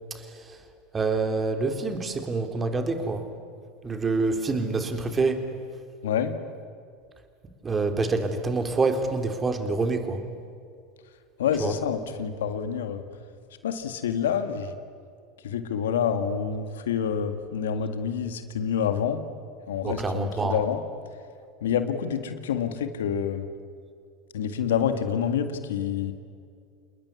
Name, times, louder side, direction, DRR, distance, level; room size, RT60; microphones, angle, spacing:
voice 1, 0.9-3.2 3.8-5.4 7.6-10.2 11.6-11.7 19.8-20.6, right 3 dB, 25° right, 6 dB, 3.6 m, -26 dB
voice 2, 6.0-6.3 11.4-13.0 13.6-14.7 15.4-19.2 19.7-20.8 21.6-23.4 24.3-26.1, left 8 dB, 80° left, 9 dB, 1.9 m, -27 dB
28.5 x 20.5 x 9.7 m, 2.3 s
hypercardioid pair, 85°, 0 cm